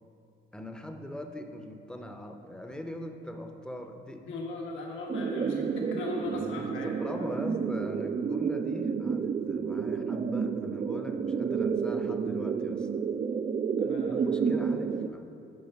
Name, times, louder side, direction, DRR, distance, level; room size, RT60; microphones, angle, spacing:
voice 1, 0.5-4.3 6.2-12.9 14.1-15.4, left 1 dB, 5° left, 5 dB, 0.7 m, -41 dB
voice 2, 4.3-6.9 7.1-7.5 13.8-14.5, left 2 dB, 75° left, -1 dB, 1.4 m, -38 dB
sound 1, 5.1-15.1, right 6 dB, 30° right, 0.4 m, -30 dB
9.4 x 4.7 x 5.7 m, 2.7 s
cardioid pair, 90°, 20 cm